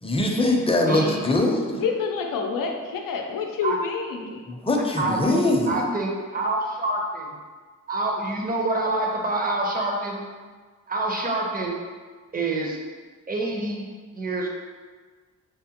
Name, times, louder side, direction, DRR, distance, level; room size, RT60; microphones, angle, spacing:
voice 1, 0.0-1.8 4.5-5.8, left 2 dB, 15° left, 0 dB, 0.5 m, -22 dB
voice 2, 0.9-1.2 3.6-3.8 5.0-7.2 7.9-10.2 10.9-11.7 12.3-12.8 13.3-13.9 14.1-14.5, right 2 dB, 25° right, 0 dB, 0.7 m, -26 dB
voice 3, 1.8-4.4, left 5 dB, 85° left, 2 dB, 0.5 m, -28 dB
5.0 x 2.1 x 2.8 m, 1.5 s
cardioid pair, 65°, 33 cm